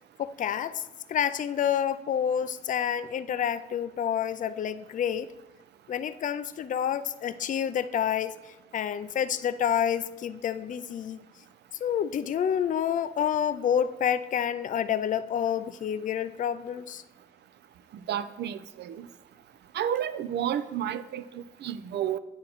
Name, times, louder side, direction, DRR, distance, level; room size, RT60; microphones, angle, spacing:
voice 1, 0.2-0.8 1.1-5.3 5.9-11.3 11.8-17.0, left 9 dB, 40° left, 14 dB, 0.4 m, -28 dB
voice 2, 18.1-19.1 19.7-22.2, right 10 dB, 60° right, 13 dB, 0.4 m, -31 dB
9.1 x 4.3 x 3.9 m, 1.0 s
supercardioid pair, 55°, 20 cm